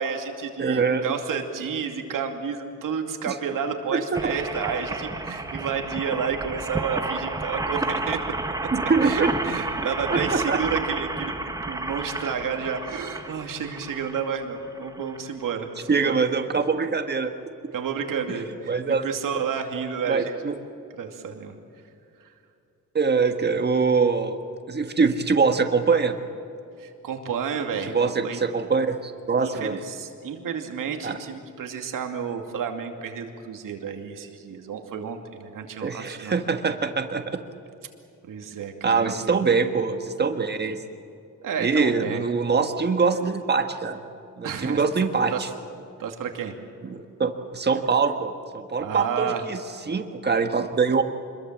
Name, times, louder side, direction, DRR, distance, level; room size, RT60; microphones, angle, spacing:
voice 1, 0.0-8.3 8.6-8.7 9.0-11.3 11.7-16.2 17.7-18.7 19.0-20.5 21.0-21.6 26.8-28.4 29.4-36.3 38.2-39.3 41.4-42.2 44.4-44.8 45.3-45.5 46.0-46.5 48.8-49.4, right 6 dB, 85° right, 4 dB, 2.6 m, -31 dB
voice 2, 0.6-1.0 3.3-3.4 3.9-4.2 8.7-9.3 10.1-10.6 15.9-17.3 18.7-19.1 20.1-20.6 22.9-24.4 24.7-26.2 27.9-29.8 31.0-31.2 35.8-37.4 38.8-40.8 41.6-44.0 44.4-45.5 46.8-49.6 49.9-51.0, right 5 dB, 30° right, 6 dB, 1.6 m, -23 dB
sound 1, 4.1-15.3 15.9-16.0 16.2-16.3, right 2 dB, 10° right, 1.3 m, -31 dB
26.0 x 22.0 x 7.5 m, 2.7 s
cardioid pair, 125°, 32 cm